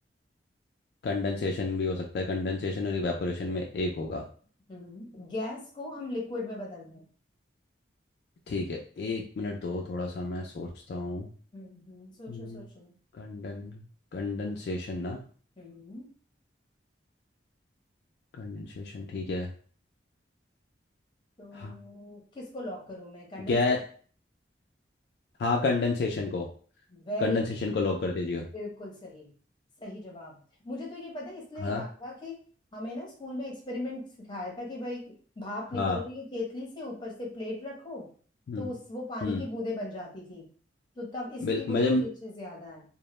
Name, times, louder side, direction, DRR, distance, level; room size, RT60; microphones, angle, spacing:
voice 1, 1.0-4.2 8.5-11.3 12.3-12.7 13.2-13.8 14.1-15.2 18.3-19.5 21.5-21.7 23.5-23.8 25.4-26.5 27.2-28.5 31.6-31.8 35.7-36.0 38.5-38.7 39.2-39.4 41.4-42.0, left 3 dB, 60° left, 1 dB, 0.3 m, -30 dB
voice 2, 4.7-7.1 11.5-12.9 15.6-16.1 21.4-23.6 26.9-27.4 28.5-29.3 29.8-30.4 30.6-32.4 32.7-35.0 35.4-38.1 38.6-40.5 41.0-42.8, left 2 dB, 25° left, -2 dB, 0.7 m, -38 dB
2.1 x 2.0 x 3.0 m, 0.43 s
head